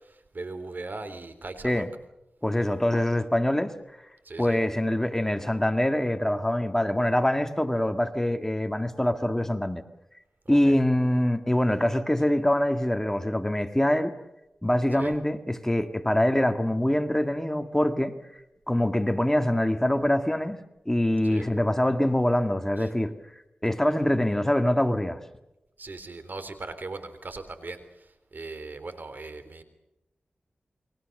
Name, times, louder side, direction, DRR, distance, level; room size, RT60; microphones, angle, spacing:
voice 1, 0.3-1.8 4.3-4.6 10.5-10.8 15.0-15.1 21.2-21.5 25.8-27.8 28.3-29.6, right 3 dB, 60° right, 10 dB, 3.5 m, -38 dB
voice 2, 2.4-3.7 4.4-9.8 10.5-14.1 14.6-18.1 18.7-23.1 23.6-25.2, left 1 dB, 10° left, 8 dB, 1.9 m, -24 dB
29.0 x 22.5 x 6.6 m, 0.92 s
wide cardioid pair, 60°, 4 cm